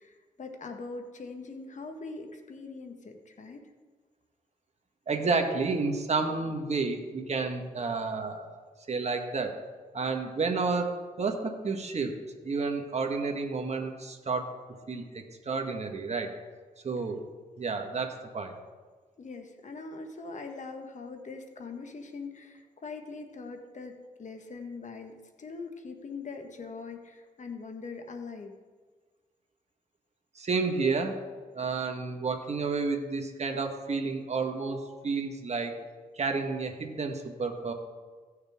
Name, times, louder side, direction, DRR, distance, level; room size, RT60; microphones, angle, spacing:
voice 1, 0.0-3.7 19.2-28.5, left 4 dB, 50° left, 5 dB, 1.4 m, -42 dB
voice 2, 5.1-8.6 8.9-9.5 9.9-12.1 12.4-14.5 14.9-16.3 16.8-17.2 17.6-18.5 30.3-31.2 31.5-35.7 36.1-37.7, right 4 dB, 45° right, 4 dB, 1.6 m, -30 dB
16.0 x 6.6 x 3.7 m, 1.4 s
cardioid pair, 60°, 15 cm